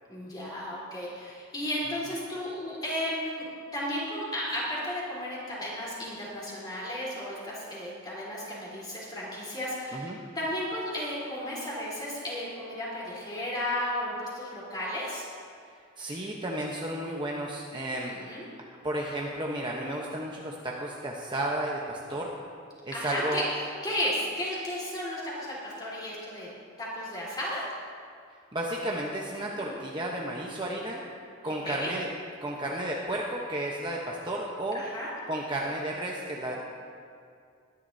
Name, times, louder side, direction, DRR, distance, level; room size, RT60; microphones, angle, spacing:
voice 1, 0.1-15.2 18.1-18.5 22.9-26.5 26.8-27.7 29.4-29.8 31.4-31.9 34.7-35.1, left 1 dB, 20° left, -7 dB, 3.7 m, -34 dB
voice 2, 16.0-18.2 18.8-22.3 22.8-23.4 28.5-31.0 31.4-32.1 32.4-34.8 35.3-36.5, right 1 dB, 20° right, -3 dB, 0.9 m, -32 dB
21.0 x 11.0 x 2.8 m, 2.2 s
head